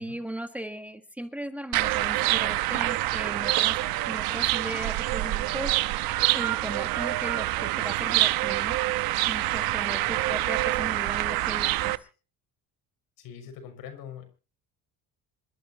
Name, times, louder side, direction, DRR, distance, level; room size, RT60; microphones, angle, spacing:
voice 1, 0.0-3.8 4.1-5.8 6.3-8.8 9.3-12.1, right 1 dB, 5° right, 6 dB, 1.6 m, -37 dB
sound 1, 1.7-12.0, right 17 dB, 80° right, 1.0 m, -26 dB
voice 2, 9.6-10.4 13.2-14.2, left 7 dB, 75° left, 7 dB, 6.4 m, -44 dB
27.0 x 13.5 x 3.0 m, 0.35 s
cardioid pair, 130°, 36 cm